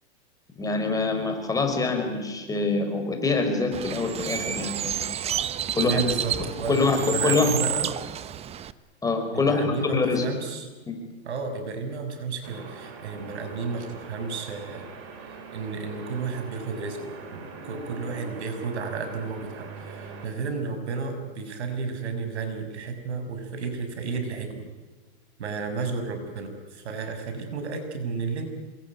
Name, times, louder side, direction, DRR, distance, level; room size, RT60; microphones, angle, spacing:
voice 1, 0.6-4.9 5.8-6.0 6.7-7.6 9.0-10.3 10.9-11.0, left 3 dB, 10° left, 4 dB, 5.1 m, -25 dB
Bird, 3.7-8.7, right 9 dB, 20° right, 0.8 m, -30 dB
voice 2, 5.8-7.9 9.3-10.7 11.2-14.9 15.2-24.6 25.4-28.5, right 4 dB, 90° right, 7 dB, 6.5 m, -32 dB
sound 1, 12.4-20.3, right 4 dB, 40° right, 5.9 m, -42 dB
27.0 x 22.5 x 9.7 m, 1.2 s
supercardioid pair, 140°, 33 cm